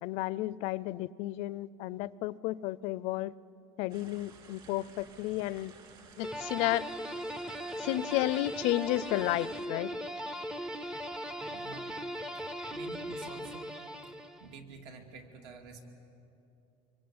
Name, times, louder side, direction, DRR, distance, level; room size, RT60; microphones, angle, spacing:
voice 1, 0.0-3.3 3.8-5.7 6.2-6.9 7.8-9.9, left 16 dB, 60° left, 19 dB, 0.5 m, -32 dB
sound 1, 3.9-9.7, right 4 dB, 40° right, 3.0 m, -55 dB
sound 2, 6.2-14.6, equal, 5° right, 0.6 m, -39 dB
voice 2, 11.5-12.0 12.3-12.4 12.7-13.7 14.4-15.8, right 4 dB, 70° right, 4 dB, 2.6 m, -49 dB
26.0 x 23.0 x 8.7 m, 2.8 s
cardioid pair, 165°, 12 cm